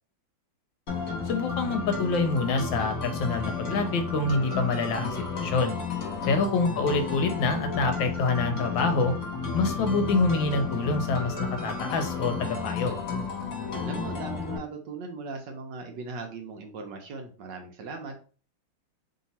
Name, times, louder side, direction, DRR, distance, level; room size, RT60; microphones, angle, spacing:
sound 1, 0.9-14.6, left 5 dB, 50° left, 1.4 m, -32 dB
voice 1, 1.2-5.8 6.3-9.1 9.5-13.0, left 3 dB, 75° left, 6 dB, 1.2 m, -26 dB
voice 2, 13.8-18.2, right 3 dB, 70° right, 4 dB, 1.2 m, -39 dB
3.2 x 2.8 x 4.1 m, 0.38 s
omnidirectional pair, 2.3 m